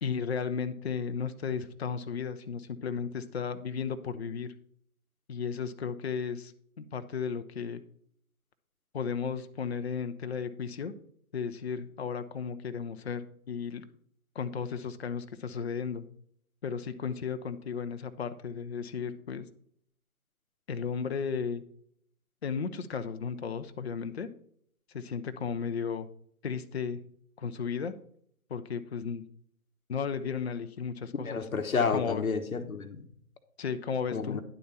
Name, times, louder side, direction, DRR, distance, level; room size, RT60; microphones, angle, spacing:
voice 1, 0.0-4.5 5.3-6.5 6.8-7.8 8.9-10.9 11.3-13.8 14.4-16.1 16.6-19.5 20.7-21.6 22.4-24.3 24.9-26.1 26.4-27.0 27.4-27.9 28.5-29.2 29.9-31.4 31.9-32.2 33.6-34.4, left 6 dB, 45° left, 10 dB, 0.6 m, -34 dB
voice 2, 31.2-33.0 34.1-34.4, left 5 dB, 70° left, 8 dB, 1.1 m, -30 dB
10.0 x 4.2 x 5.3 m, 0.66 s
figure-of-eight pair, 140°, 43 cm